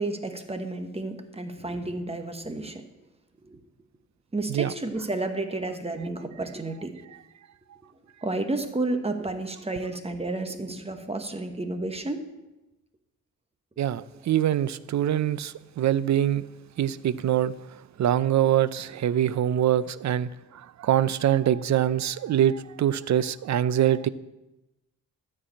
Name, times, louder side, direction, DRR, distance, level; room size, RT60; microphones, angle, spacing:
voice 1, 0.0-2.9 3.4-3.6 4.3-6.9 8.2-12.2, right 2 dB, 20° right, 6 dB, 1.1 m, -31 dB
voice 2, 13.8-16.4 16.8-17.5 18.0-24.1, right 11 dB, 60° right, 16 dB, 0.5 m, -24 dB
13.0 x 4.8 x 8.4 m, 1.0 s
cardioid pair, 100°, 32 cm